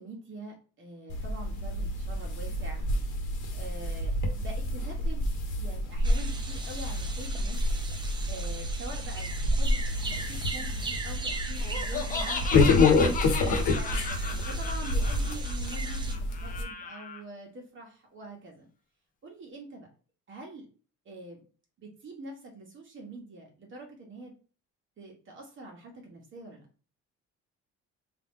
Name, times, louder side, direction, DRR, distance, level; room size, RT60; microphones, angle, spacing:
voice 1, 0.0-2.9 3.5-5.2 5.6-7.6 8.3-13.1 13.7-18.7 19.2-19.9 20.3-20.7 21.0-21.4 21.8-24.3 25.0-26.7, right 1 dB, 40° right, 1 dB, 1.1 m, -45 dB
sound 1, 1.1-16.6, left 2 dB, 85° left, 1.0 m, -28 dB
sound 2, 6.0-16.2, right 3 dB, 15° right, 0.6 m, -40 dB
Laughter, 11.6-17.2, left 4 dB, 30° left, 0.5 m, -36 dB
3.7 x 2.5 x 3.6 m, 0.38 s
cardioid pair, 130°, 30 cm